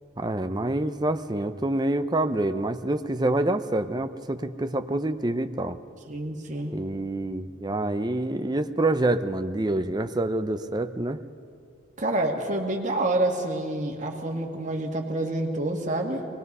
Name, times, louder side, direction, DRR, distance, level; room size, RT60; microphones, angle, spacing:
voice 1, 0.2-5.8 6.7-11.2, right 2 dB, 20° right, 9 dB, 0.6 m, -27 dB
voice 2, 6.1-6.7 12.0-16.3, right 1 dB, 40° right, 1 dB, 2.0 m, -27 dB
23.5 x 20.5 x 5.5 m, 2.3 s
head